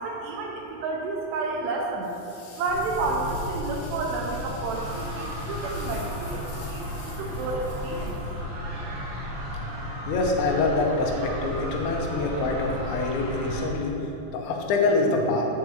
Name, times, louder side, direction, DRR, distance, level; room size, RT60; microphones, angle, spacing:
voice 1, 0.0-2.1 2.6-6.4 6.7-8.2, right 3 dB, 85° right, 0 dB, 2.5 m, -30 dB
sound 1, 2.0-8.7, left 4 dB, 65° left, 2.7 m, -48 dB
sound 2, 2.7-13.8, left 1 dB, 50° left, 3.0 m, -35 dB
sound 3, 4.7-13.7, equal, 55° right, 2.0 m, -39 dB
voice 2, 10.1-14.0 14.3-15.4, left 3 dB, 85° left, 0 dB, 3.2 m, -25 dB
7.3 x 4.8 x 7.0 m, 2.9 s
omnidirectional pair, 5.3 m